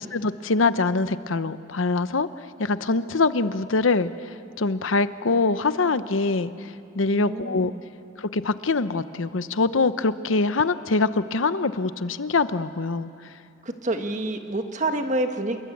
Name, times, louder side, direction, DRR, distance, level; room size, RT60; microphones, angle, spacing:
voice 1, 0.0-2.3 2.6-4.1 4.6-6.5 6.9-7.7 8.2-13.1, left 3 dB, 85° left, 13 dB, 0.9 m, -23 dB
voice 2, 7.1-7.8 13.6-15.6, right 2 dB, 40° right, 6 dB, 1.5 m, -28 dB
28.0 x 22.5 x 8.6 m, 2.5 s
head